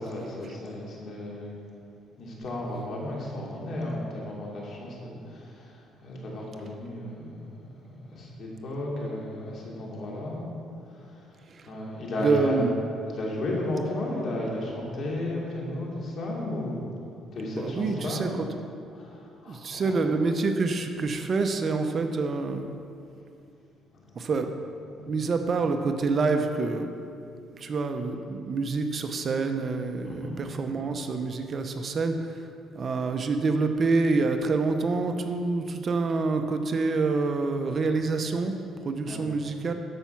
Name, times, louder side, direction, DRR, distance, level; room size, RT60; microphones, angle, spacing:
voice 1, 0.0-1.5 2.2-7.7 8.1-10.5 11.1-11.2 11.7-12.6 13.1-16.9 17.3-18.2 18.9-20.0 24.2-24.3 30.0-30.3 39.1-39.3, left 1 dB, 50° left, -3 dB, 2.7 m, -34 dB
voice 2, 12.2-12.8 17.5-18.5 19.5-22.7 24.2-24.5 25.1-26.9 27.5-32.5 32.7-39.7, right 3 dB, 40° right, 6 dB, 0.7 m, -27 dB
13.5 x 5.6 x 5.8 m, 2.5 s
cardioid pair, 125°, 0 cm